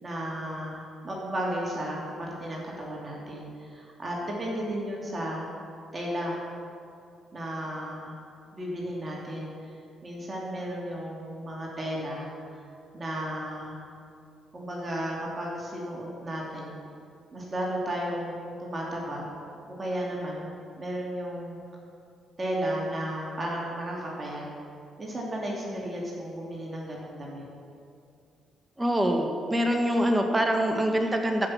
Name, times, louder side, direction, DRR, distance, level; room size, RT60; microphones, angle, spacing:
voice 1, 0.0-5.5 5.9-6.5 7.3-8.2 8.5-9.8 10.0-12.3 12.5-12.6 12.9-13.8 14.5-16.8 17.3-19.3 19.8-21.6 22.4-24.5 25.0-27.4, right 1 dB, 35° right, -3 dB, 2.7 m, -34 dB
voice 2, 28.8-31.5, equal, 15° right, 3 dB, 1.6 m, -25 dB
14.0 x 6.0 x 5.9 m, 2.4 s
supercardioid pair, 60°, 0 cm